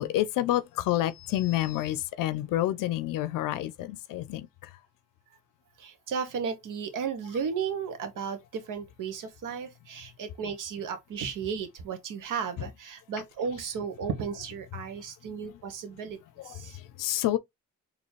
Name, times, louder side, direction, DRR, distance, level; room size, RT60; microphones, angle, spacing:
voice 1, 0.0-4.7 12.6-12.7 16.4-17.4, left 14 dB, 85° left, 0.5 m, -29 dB
voice 2, 5.8-16.2 16.4-16.8, right 6 dB, 75° right, 1.0 m, -34 dB
4.1 x 2.8 x 3.2 m
supercardioid pair, 55°, 32 cm